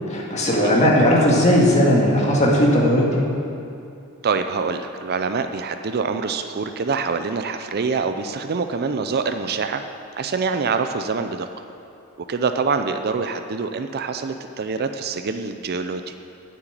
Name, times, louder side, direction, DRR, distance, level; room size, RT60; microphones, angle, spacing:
voice 1, 0.1-3.2, equal, 30° left, -3 dB, 2.0 m, -17 dB
voice 2, 4.2-9.8 10.2-11.6 12.3-16.1, right 4 dB, 45° right, 8 dB, 0.5 m, -25 dB
8.9 x 7.9 x 9.1 m, 2.6 s
head